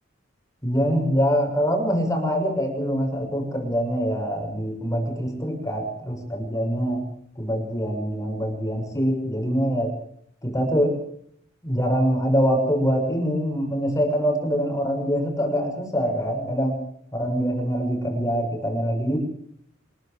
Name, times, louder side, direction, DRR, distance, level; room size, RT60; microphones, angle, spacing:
voice 1, 0.6-7.1 7.4-10.0 10.4-11.0 11.6-16.8 17.1-19.2, equal, 15° left, 3 dB, 6.6 m, -24 dB
26.5 x 14.0 x 7.8 m, 0.67 s
head